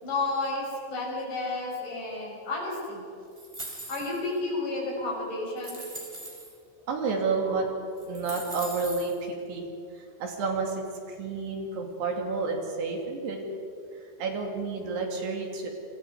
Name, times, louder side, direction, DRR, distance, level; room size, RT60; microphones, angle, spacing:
voice 1, 0.0-3.0 3.9-5.8, left 2 dB, 75° left, -2 dB, 8.0 m, -31 dB
sound 1, 3.4-4.3 5.0-5.1 5.6-6.5 7.5-7.6 8.0-9.2, right 2 dB, 5° right, 3.0 m, -41 dB
voice 2, 6.9-7.7 8.0-9.6 10.2-13.4 14.2-15.7, right 4 dB, 65° right, 1 dB, 4.5 m, -30 dB
29.0 x 24.5 x 4.8 m, 2.6 s
omnidirectional pair, 5.2 m